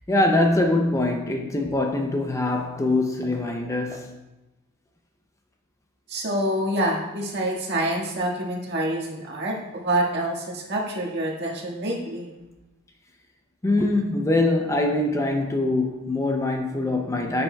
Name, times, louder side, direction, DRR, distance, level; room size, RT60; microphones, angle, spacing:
voice 1, 0.1-4.1 13.6-17.4, left 2 dB, 15° left, 0.5 m, -23 dB
voice 2, 6.1-12.3, right 1 dB, 55° right, 1.7 m, -27 dB
10.0 x 6.9 x 2.3 m
head